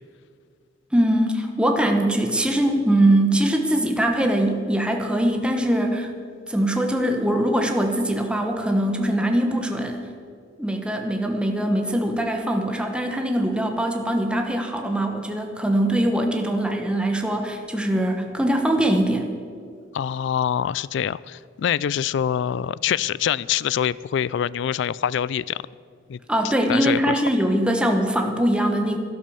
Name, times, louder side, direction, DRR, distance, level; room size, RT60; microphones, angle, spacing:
voice 1, 0.9-6.1 6.5-10.0 10.6-19.3 26.3-29.0, right 1 dB, 5° right, 3 dB, 1.1 m, -22 dB
voice 2, 19.9-25.6 26.1-26.2 26.7-27.2, left 9 dB, 70° left, 20 dB, 0.3 m, -25 dB
12.0 x 12.0 x 7.0 m, 2.2 s
head